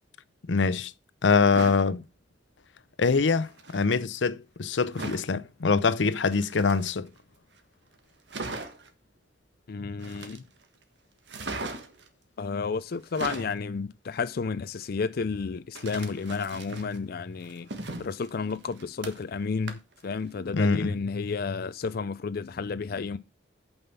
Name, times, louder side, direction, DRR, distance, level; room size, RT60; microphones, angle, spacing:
voice 1, 0.5-0.9 1.2-2.0 3.0-7.1 20.5-20.9, left 4 dB, 90° left, 0.7 m, -24 dB
sound 1, 1.4-1.8 3.4-3.9 4.9-5.3 6.2-7.2 7.6-7.7 7.9-8.0 8.3-8.9 10.0-10.6 11.3-12.1 12.9-13.6 15.7-17.0 17.4-19.4 19.7-20.0 20.4-20.5, right 3 dB, 70° right, 1.4 m, -38 dB
voice 2, 9.7-10.4 12.4-17.7 18.0-23.2, left 4 dB, 55° left, 0.4 m, -31 dB
8.8 x 5.6 x 5.7 m
head